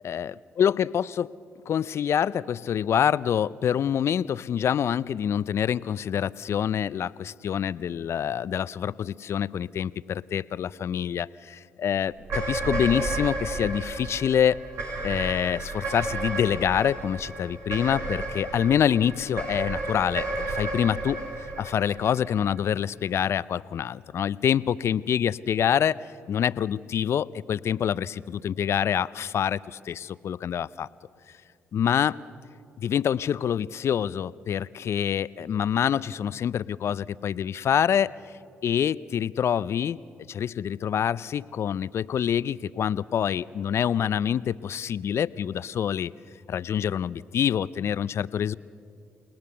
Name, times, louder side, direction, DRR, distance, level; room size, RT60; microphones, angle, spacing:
voice 1, 0.6-1.3 1.7-14.6 15.0-21.2 21.6-26.0 26.3-30.9 31.7-32.2 32.8-38.1 38.6-40.0 40.3-46.1 46.5-48.5, left 9 dB, 60° left, 18 dB, 0.5 m, -26 dB
sound 1, 12.2-22.7, right 2 dB, 65° right, 4.7 m, -32 dB
29.5 x 19.0 x 6.9 m, 2.4 s
hypercardioid pair, 45°, 5 cm